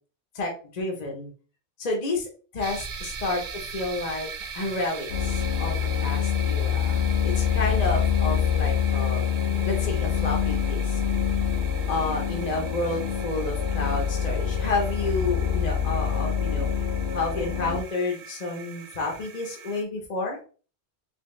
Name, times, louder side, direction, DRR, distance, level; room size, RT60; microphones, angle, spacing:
voice 1, 0.3-1.3 1.8-2.3 2.5-3.4 3.7-4.3 4.5-9.3 9.6-11.0 11.9-16.7 17.1-20.4, left 2 dB, 40° left, 1 dB, 0.9 m, -30 dB
sound 1, 2.6-19.8, right 6 dB, 55° right, 0.4 m, -41 dB
sound 2, 5.1-17.8, left 8 dB, 75° left, 0.9 m, -26 dB
3.5 x 3.0 x 3.1 m, 0.38 s
omnidirectional pair, 1.1 m